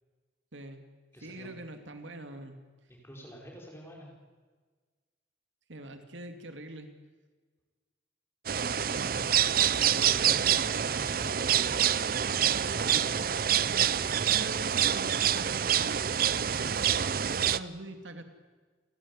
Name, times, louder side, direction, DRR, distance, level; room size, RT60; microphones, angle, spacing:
voice 1, 0.5-0.8 1.2-2.6 5.7-6.9 13.6-18.2, right 1 dB, 85° right, 7 dB, 2.4 m, -44 dB
voice 2, 1.1-1.5 2.9-4.1 8.6-9.7 10.1-13.4, equal, 15° left, -1 dB, 5.3 m, -48 dB
sound 1, 8.5-17.6, right 9 dB, 50° right, 0.6 m, -27 dB
29.0 x 12.5 x 9.7 m, 1.4 s
head